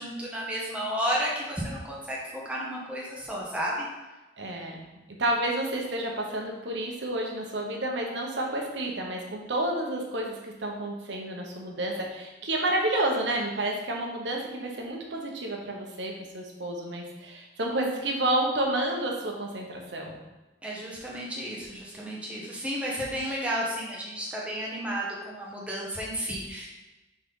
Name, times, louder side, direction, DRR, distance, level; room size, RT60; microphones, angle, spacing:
voice 1, 0.0-2.2 2.4-3.9 20.6-26.7, equal, 5° right, -5 dB, 1.3 m, -32 dB
voice 2, 4.4-4.9 5.2-20.2, right 1 dB, 65° right, 0 dB, 1.1 m, -30 dB
6.2 x 4.2 x 3.8 m, 1.1 s
head